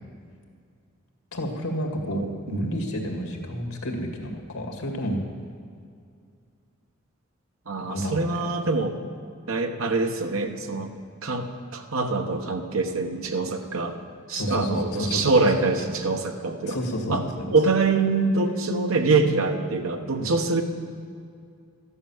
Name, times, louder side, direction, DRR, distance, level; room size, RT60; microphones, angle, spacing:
voice 1, 1.3-2.2 2.5-5.2 7.9-8.4 14.3-15.3 16.6-17.5 20.2-20.3, equal, 80° left, 3 dB, 2.3 m, -30 dB
voice 2, 2.1-2.8 7.7-9.0 9.5-10.9 11.2-14.0 14.3-16.8 17.1-17.2 17.5-20.6, right 3 dB, 75° right, 5 dB, 1.1 m, -24 dB
13.0 x 11.0 x 7.2 m, 2.3 s
head